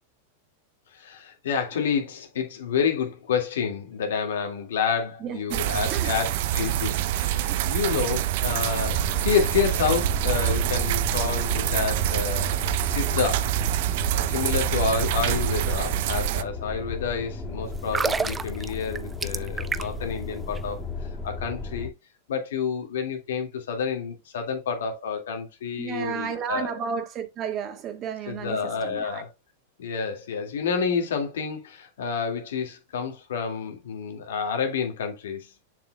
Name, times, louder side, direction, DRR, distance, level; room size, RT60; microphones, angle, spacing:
voice 1, 0.9-13.5 14.1-20.8 21.2-21.9 22.3-26.8 28.3-29.3 29.8-35.5, left 6 dB, 80° left, 2.0 m, -29 dB
voice 2, 5.2-5.6 5.8-6.1 25.8-29.2, right 7 dB, 35° right, 1.6 m, -32 dB
sound 1, 5.5-16.4, right 13 dB, 60° right, 0.5 m, -26 dB
sound 2, 8.8-21.9, left 3 dB, 10° left, 2.2 m, -34 dB
sound 3, 17.8-20.1 20.4-20.6, right 5 dB, 15° right, 0.4 m, -29 dB
7.1 x 6.6 x 2.3 m
hypercardioid pair, 120°, 0 cm